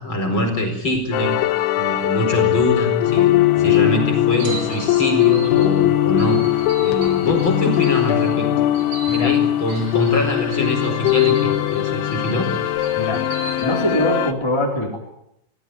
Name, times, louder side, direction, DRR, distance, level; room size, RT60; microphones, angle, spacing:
voice 1, 0.0-1.5 1.8-8.5 9.1-12.5, left 1 dB, 25° left, 4 dB, 4.9 m, -24 dB
sound 1, 1.1-14.3, left 14 dB, 85° left, 3.6 m, -20 dB
voice 2, 2.2-2.7 3.6-3.9 9.1-9.3 12.9-13.2 13.6-15.0, left 1 dB, 5° left, 0 dB, 3.2 m, -24 dB
sound 2, 4.4-6.3, right 1 dB, 30° right, 5.4 m, -37 dB
sound 3, 4.4-14.2, right 3 dB, 65° right, 8.8 m, -37 dB
25.0 x 17.5 x 9.3 m, 0.76 s
omnidirectional pair, 5.3 m